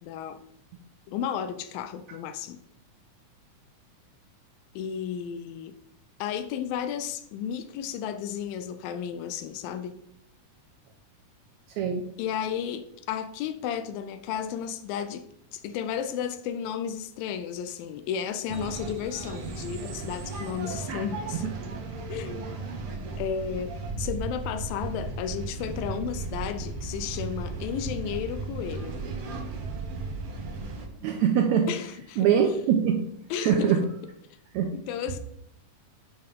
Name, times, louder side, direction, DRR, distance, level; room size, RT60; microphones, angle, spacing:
voice 1, 0.0-0.4 1.1-2.6 4.8-5.8 6.2-9.9 12.2-21.4 22.1-22.5 23.2-29.0 31.7-32.3 33.3-33.7 34.7-35.2, left 8 dB, 90° left, 2.4 m, -33 dB
sound 1, 18.5-30.9, right 3 dB, 65° right, 1.4 m, -35 dB
voice 2, 31.0-31.7 32.2-33.0 33.4-33.8 34.5-34.7, right 8 dB, 85° right, 1.6 m, -23 dB
9.0 x 5.5 x 3.5 m
omnidirectional pair, 4.0 m